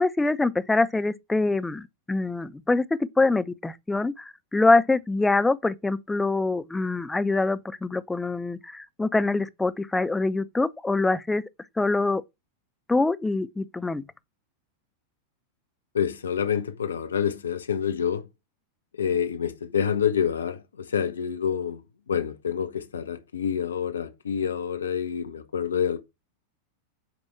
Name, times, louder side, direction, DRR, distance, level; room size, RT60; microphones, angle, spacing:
voice 1, 0.0-11.4 11.8-12.2 12.9-14.0, left 3 dB, 10° left, 0.6 m, -24 dB
voice 2, 15.9-18.3 19.0-21.8 22.1-26.0, left 7 dB, 70° left, 1.1 m, -27 dB
8.3 x 5.2 x 4.6 m
figure-of-eight pair, 90°, 0 cm